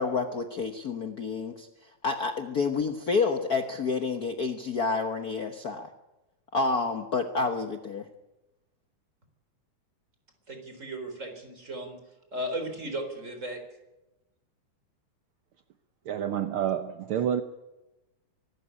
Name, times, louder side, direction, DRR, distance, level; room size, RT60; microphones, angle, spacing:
voice 1, 0.0-1.7 2.0-5.9 6.5-8.1, left 4 dB, 80° left, 6 dB, 0.8 m, -29 dB
voice 2, 10.5-12.0 12.3-13.6, right 1 dB, 25° right, 6 dB, 4.1 m, -35 dB
voice 3, 16.1-17.4, right 9 dB, 75° right, 9 dB, 1.2 m, -28 dB
24.5 x 13.0 x 10.0 m, 1.0 s
omnidirectional pair, 3.6 m